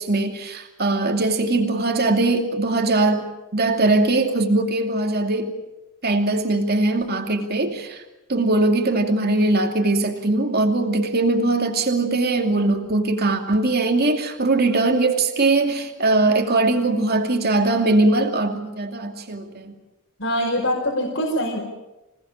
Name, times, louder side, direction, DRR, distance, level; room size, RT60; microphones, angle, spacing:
voice 1, 0.0-3.2 3.5-5.5 6.0-8.0 8.3-19.7, right 2 dB, 50° right, 3 dB, 2.6 m, -21 dB
voice 2, 20.2-21.6, equal, 65° left, -1 dB, 5.1 m, -23 dB
26.5 x 18.5 x 8.8 m, 1.0 s
head